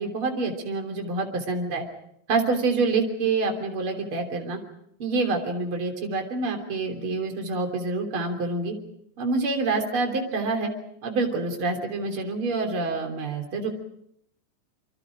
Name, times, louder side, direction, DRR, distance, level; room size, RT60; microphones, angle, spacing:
voice 1, 0.0-1.8 2.3-4.6 5.0-8.7 9.2-10.7 11.0-13.7, right 3 dB, 40° right, 3 dB, 3.9 m, -27 dB
27.5 x 25.0 x 5.1 m, 0.73 s
omnidirectional pair, 3.6 m